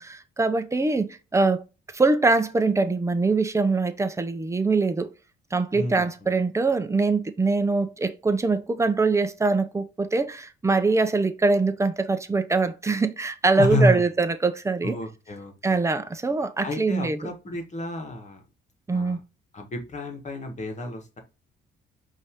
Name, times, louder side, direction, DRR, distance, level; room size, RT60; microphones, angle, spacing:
voice 1, 0.0-1.6 1.9-5.1 5.5-15.0 15.6-17.2 18.9-19.2, right 3 dB, 15° right, 0.6 m, -23 dB
voice 2, 5.7-6.4 13.6-14.0 14.8-15.8 16.6-18.4 18.9-19.2 19.5-21.2, left 1 dB, 35° left, 1.5 m, -29 dB
5.3 x 2.7 x 3.6 m
cardioid pair, 90°, 20 cm